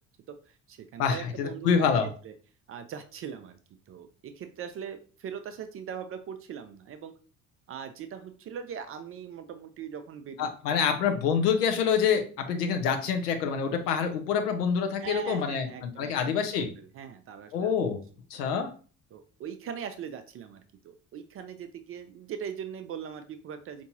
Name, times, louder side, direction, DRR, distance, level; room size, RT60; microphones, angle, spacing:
voice 1, 0.5-1.9 2.2-2.3 2.7-3.6 3.9-7.1 7.7-10.5 15.0-16.1 16.6-17.7 19.1-23.8, right 8 dB, 30° right, 8 dB, 0.4 m, -40 dB
voice 2, 1.0-2.1 10.4-15.7 16.0-16.7 17.5-18.0 18.3-18.7, left 6 dB, 75° left, 5 dB, 0.7 m, -26 dB
4.5 x 2.6 x 2.7 m, 0.39 s
figure-of-eight pair, 50°, 48 cm